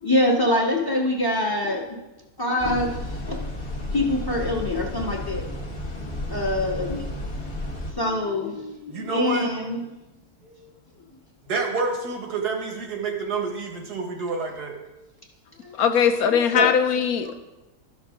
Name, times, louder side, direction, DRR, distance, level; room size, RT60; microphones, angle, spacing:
voice 1, 0.0-2.0 2.4-3.0 3.2-3.5 3.9-5.4 6.3-7.0 7.9-9.8 10.4-10.7 15.6-15.8 16.5-16.7 17.2-17.3, left 1 dB, 15° left, -1 dB, 1.2 m, -25 dB
sound 1, 2.6-7.9, left 1 dB, 40° left, 1.6 m, -32 dB
voice 2, 8.9-9.5 11.5-14.7, right 4 dB, 90° right, 2 dB, 1.9 m, -28 dB
voice 3, 15.8-17.3, left 7 dB, 75° left, 8 dB, 1.1 m, -20 dB
12.0 x 6.3 x 3.7 m, 1.0 s
omnidirectional pair, 1.7 m